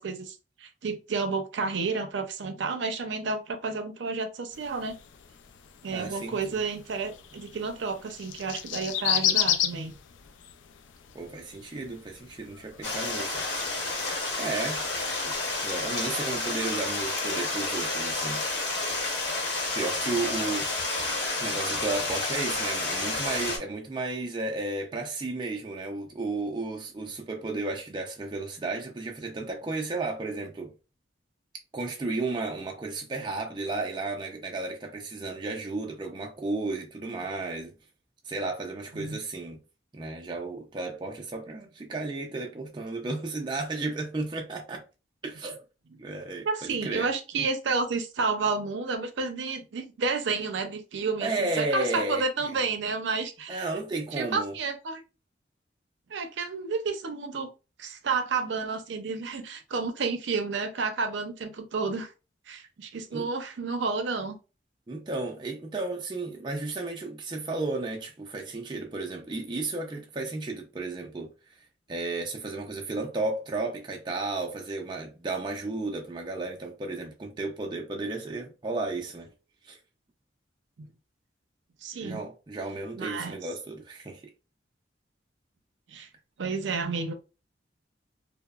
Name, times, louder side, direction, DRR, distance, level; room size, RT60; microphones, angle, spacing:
voice 1, 0.0-5.0 5.8-9.9 15.2-15.3 39.0-39.2 46.4-53.7 54.1-55.0 56.1-57.5 57.8-62.1 62.5-64.4 80.8-80.9 81.8-82.2 82.9-83.3 85.9-86.1 86.4-87.1, right 4 dB, 80° right, 0.5 m, -31 dB
sound 1, 4.5-16.1, left 10 dB, 85° left, 0.3 m, -34 dB
voice 2, 5.9-6.4 11.1-13.6 14.4-14.8 15.6-19.2 19.7-20.7 21.4-30.7 31.7-37.7 38.3-39.6 39.9-44.8 45.2-45.6 46.0-47.1 51.2-52.2 52.5-52.6 53.5-54.6 63.1-63.3 64.9-71.3 71.9-79.3 79.6-79.8 82.0-84.3, right 3 dB, 25° right, 0.3 m, -33 dB
Stream, 12.8-23.6, left 2 dB, 65° left, 0.9 m, -30 dB
2.9 x 2.0 x 2.3 m
head